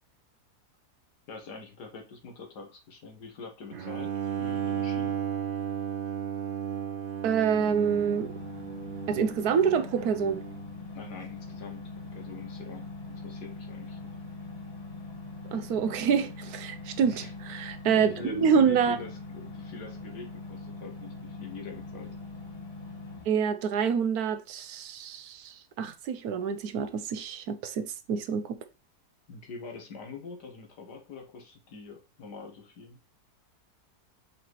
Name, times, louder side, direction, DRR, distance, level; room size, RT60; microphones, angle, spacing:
voice 1, 1.3-5.2 10.9-11.8 12.1-14.1 17.0-17.3 17.9-22.1 29.3-33.0, left 4 dB, 90° left, 2.0 m, -44 dB
Bowed string instrument, 3.7-10.7, right 9 dB, 45° right, 0.7 m, -34 dB
voice 2, 7.2-8.3 9.1-10.4 15.4-19.0 23.3-28.6, right 7 dB, 70° right, 1.2 m, -27 dB
sound 1, 7.5-23.3, left 3 dB, 25° left, 1.4 m, -42 dB
5.0 x 4.2 x 4.6 m
omnidirectional pair, 1.7 m